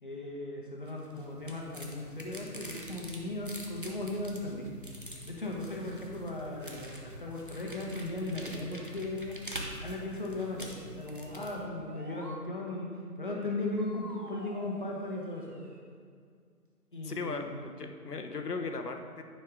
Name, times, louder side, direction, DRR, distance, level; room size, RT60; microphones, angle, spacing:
voice 1, 0.0-4.7 5.2-9.4 9.8-12.9 13.2-15.6 16.9-17.7, left 2 dB, 30° left, -1 dB, 0.9 m, -37 dB
sound 1, 0.9-11.6, equal, 35° right, 0.6 m, -46 dB
sound 2, 10.6-12.4 13.8-15.8, right 1 dB, 75° right, 1.5 m, -49 dB
voice 2, 17.0-19.2, left 4 dB, 75° left, 5 dB, 1.0 m, -37 dB
10.0 x 5.5 x 3.6 m, 2.1 s
figure-of-eight pair, 160°, 48 cm